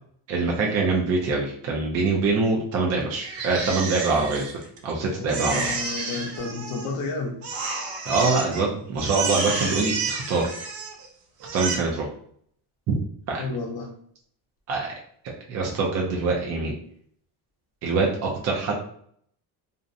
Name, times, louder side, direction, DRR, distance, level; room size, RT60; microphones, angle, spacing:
voice 1, 0.3-4.5 4.8-5.7 8.1-10.7 11.5-12.0 12.9-13.0 13.3-13.4 14.7-14.9 15.5-16.7 17.8-18.7, right 3 dB, 40° right, -2 dB, 0.4 m, -24 dB
Crying sobbing, 3.2-4.9 5.3-7.1 7.4-8.6 9.0-11.1 11.4-11.7, right 4 dB, 85° right, 0.7 m, -30 dB
voice 2, 5.2-7.4 13.4-13.9, left 3 dB, 65° left, 1 dB, 0.7 m, -31 dB
2.5 x 2.0 x 2.5 m, 0.64 s
cardioid pair, 150°, 41 cm